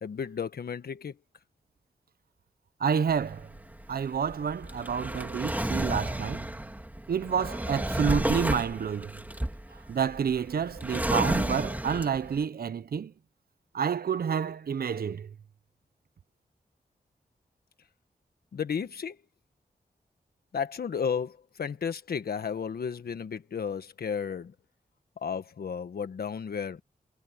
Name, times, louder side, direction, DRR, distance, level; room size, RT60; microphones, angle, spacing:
voice 1, 0.0-1.2 18.5-19.2 20.5-24.5 25.2-26.8, left 6 dB, 80° left, 1.6 m, -33 dB
voice 2, 2.8-3.5 3.9-6.5 7.1-9.1 9.9-13.1 13.7-15.3, right 7 dB, 75° right, 1.0 m, -29 dB
Drawer open or close, 3.1-12.4, right 1 dB, 10° right, 2.9 m, -32 dB
cardioid pair, 55°, 16 cm